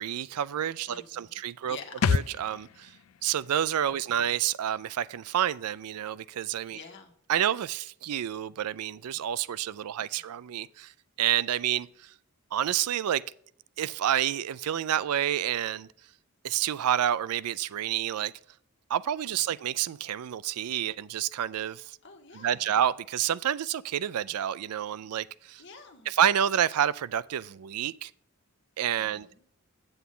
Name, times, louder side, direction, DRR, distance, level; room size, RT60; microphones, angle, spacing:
voice 1, 0.0-1.8 2.1-2.9 3.2-6.8 7.3-10.9 11.2-12.1 12.5-13.2 13.8-15.9 16.4-18.3 18.9-22.0 22.3-25.6 26.1-28.1 28.8-29.3, right 10 dB, 90° right, 0.4 m, -29 dB
voice 2, 0.9-1.4 1.6-2.0 6.7-7.1 22.0-22.7 25.6-26.2 29.0-29.4, left 5 dB, 55° left, 1.6 m, -48 dB
sound 1, 2.0-5.5 5.8-5.9, left 6 dB, 75° left, 0.4 m, -33 dB
8.3 x 7.9 x 3.7 m
head